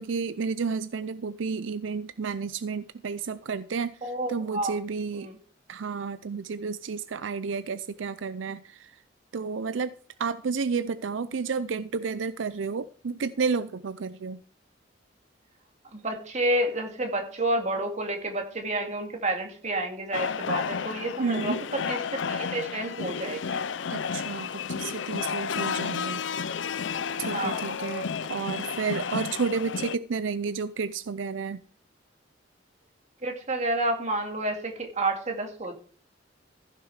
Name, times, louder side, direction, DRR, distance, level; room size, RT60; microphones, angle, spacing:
voice 1, 0.0-5.3 5.7-8.9 9.3-9.9 10.2-14.4 21.2-21.6 23.9-26.3 27.2-31.6, right 5 dB, 80° right, 14 dB, 0.5 m, -31 dB
voice 2, 4.0-4.7 5.1-5.4 15.9-23.6 27.2-27.8 33.2-35.7, right 1 dB, 40° right, 3 dB, 2.2 m, -30 dB
sound 1, 20.1-30.0, left 6 dB, 70° left, 0.5 m, -32 dB
15.0 x 6.7 x 4.8 m, 0.43 s
head